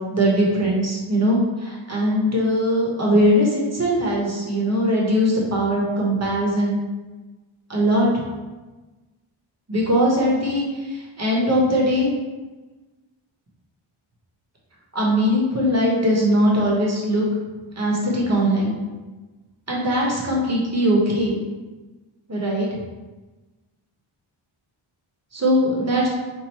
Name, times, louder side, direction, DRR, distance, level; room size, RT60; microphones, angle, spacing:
voice 1, 0.1-6.8 7.7-8.1 9.7-10.6 10.9-12.1 14.9-17.2 17.8-18.7 19.7-21.4 22.3-22.7 25.3-26.1, equal, 30° right, -3 dB, 0.8 m, -20 dB
3.0 x 2.5 x 4.1 m, 1.2 s
wide cardioid pair, 170°, 49 cm